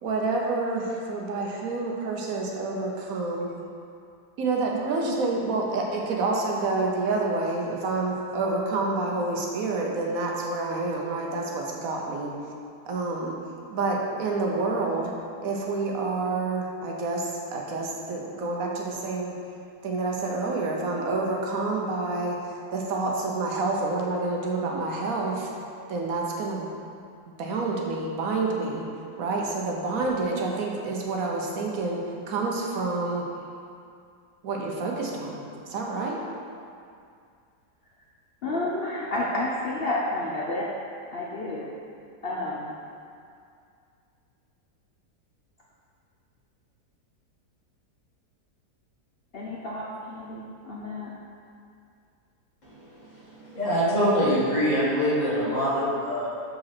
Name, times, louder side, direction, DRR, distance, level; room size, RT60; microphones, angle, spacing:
voice 1, 0.0-3.5 4.4-12.3 12.9-13.4 13.7-15.1 15.4-19.3 19.8-22.4 22.7-25.5 25.9-26.7 27.4-28.9 29.2-33.2 34.4-35.4 35.7-36.2, right 3 dB, 65° right, -1 dB, 1.1 m, -28 dB
voice 2, 38.4-40.7 41.1-41.7 42.2-42.8 49.3-51.1, left 1 dB, 65° left, -5 dB, 0.5 m, -30 dB
voice 3, 53.0-56.3, equal, 25° left, -9 dB, 1.8 m, -24 dB
5.2 x 4.1 x 5.8 m, 2.4 s
omnidirectional pair, 1.8 m